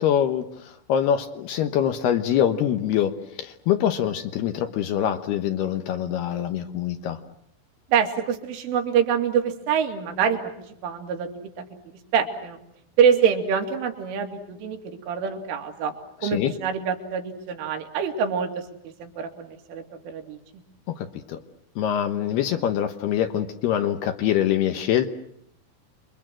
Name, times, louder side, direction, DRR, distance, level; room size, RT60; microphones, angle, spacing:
voice 1, 0.0-7.2 16.2-16.5 20.9-21.4 21.8-25.1, left 10 dB, 70° left, 8 dB, 2.8 m, -24 dB
voice 2, 7.9-10.5 10.8-11.3 11.6-11.7 12.1-12.6 13.0-15.9 16.2-20.4, right 7 dB, 80° right, 4 dB, 4.9 m, -25 dB
29.0 x 23.0 x 7.7 m, 0.74 s
omnidirectional pair, 5.6 m